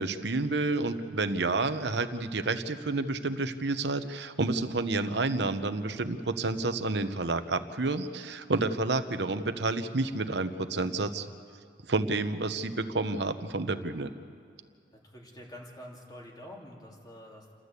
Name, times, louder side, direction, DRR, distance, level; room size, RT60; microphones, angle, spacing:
voice 1, 0.0-11.3 11.9-14.1, right 3 dB, 70° right, 9 dB, 1.0 m, -30 dB
voice 2, 15.0-17.5, equal, 20° left, -1 dB, 2.9 m, -47 dB
29.0 x 12.5 x 8.3 m, 2.3 s
head